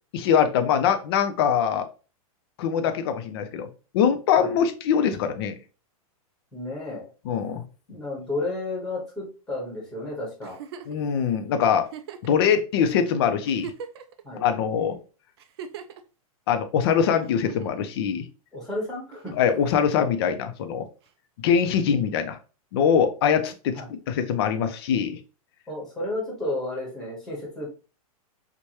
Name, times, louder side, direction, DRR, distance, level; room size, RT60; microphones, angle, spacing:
voice 1, 0.1-1.9 2.6-3.7 3.9-5.6 7.3-7.6 10.9-11.9 12.2-13.7 14.4-15.0 16.5-18.2 19.3-20.9 21.4-22.4 22.7-23.8 24.1-25.2, left 7 dB, 40° left, 8 dB, 0.5 m, -23 dB
voice 2, 6.5-7.1 7.9-10.6 14.2-14.4 18.5-19.3 23.7-23.8 25.7-27.7, left 2 dB, 5° left, -4 dB, 1.1 m, -32 dB
Giggle, 10.4-11.0 11.8-12.3 13.0-13.1 13.4-14.2 15.4-16.0 17.2-17.8 19.1-19.6 21.1-21.2, right 7 dB, 45° right, 0.4 m, -40 dB
4.6 x 2.2 x 2.8 m, 0.34 s
supercardioid pair, 165°, 19 cm